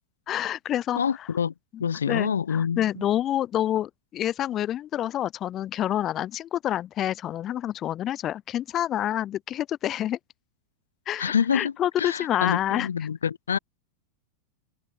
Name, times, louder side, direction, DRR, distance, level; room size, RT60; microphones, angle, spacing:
voice 1, 0.3-1.0 1.7-10.2 11.1-12.9, left 12 dB, 30° left, 2.3 m, -28 dB
voice 2, 1.0-1.5 1.8-3.0 11.2-11.7 12.0-13.6, left 7 dB, 70° left, 2.6 m, -26 dB
figure-of-eight pair, 90°, 0 cm